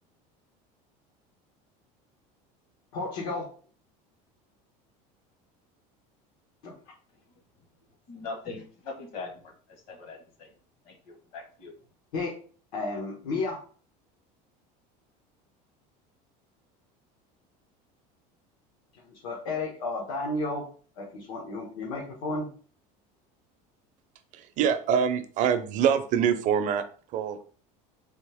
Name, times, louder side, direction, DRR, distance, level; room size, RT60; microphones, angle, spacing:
voice 1, 2.9-3.5 6.6-6.7 12.1-12.3 12.7-13.6 19.0-20.6 21.0-22.5, left 2 dB, 80° left, -3 dB, 1.4 m, -32 dB
voice 2, 8.1-10.5 10.8-11.7, left 4 dB, 55° left, 3 dB, 1.3 m, -41 dB
voice 3, 24.3-27.5, right 8 dB, 45° right, 9 dB, 0.5 m, -25 dB
4.1 x 2.8 x 3.5 m, 0.42 s
cardioid pair, 150°, 18 cm